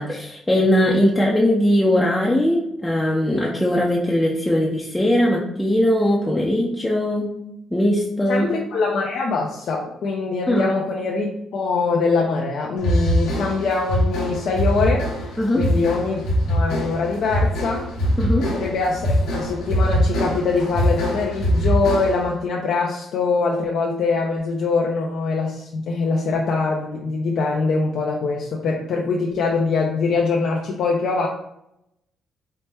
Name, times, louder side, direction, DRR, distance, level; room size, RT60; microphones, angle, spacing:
voice 1, 0.0-7.4 7.7-8.5 10.5-10.7 15.4-15.6 18.2-18.5, left 1 dB, 10° left, -3 dB, 0.5 m, -20 dB
voice 2, 8.3-15.3 15.6-16.2 16.5-17.8 18.4-31.3, left 4 dB, 70° left, -1 dB, 0.5 m, -23 dB
sound 1, 12.8-22.3, equal, 85° left, 1.0 m, -22 dB
4.3 x 2.1 x 3.3 m, 0.81 s
cardioid pair, 90°, 0 cm